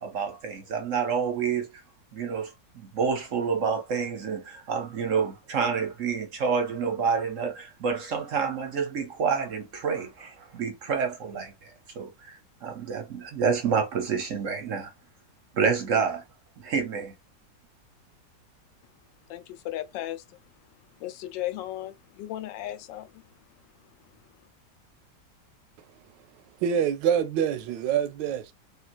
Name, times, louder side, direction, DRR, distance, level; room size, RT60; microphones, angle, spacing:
voice 1, 0.0-1.7 2.1-2.5 2.8-14.9 15.5-16.2 16.6-17.1, right 6 dB, 60° right, 0.9 m, -28 dB
voice 2, 19.3-20.2 21.0-23.2, left 14 dB, 85° left, 1.2 m, -35 dB
voice 3, 26.6-28.5, right 8 dB, 80° right, 1.2 m, -25 dB
3.8 x 2.4 x 2.4 m
omnidirectional pair, 1.9 m